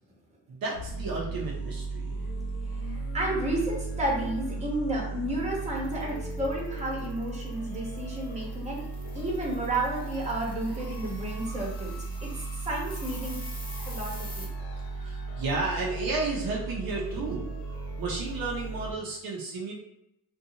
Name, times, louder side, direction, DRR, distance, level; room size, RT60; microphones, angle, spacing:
voice 1, 0.5-2.1 14.8-17.5 18.0-19.7, right 3 dB, 65° right, -3 dB, 0.7 m, -32 dB
sound 1, 0.7-18.9, right 3 dB, 70° left, 0.6 m, -36 dB
voice 2, 2.7-8.9 9.1-11.9 12.2-13.4 13.9-14.5, right 1 dB, 20° right, -3 dB, 0.9 m, -32 dB
sound 2, 5.8-14.5, left 1 dB, 20° left, 0.8 m, -48 dB
2.6 x 2.3 x 2.7 m, 0.81 s
cardioid pair, 95°, 38 cm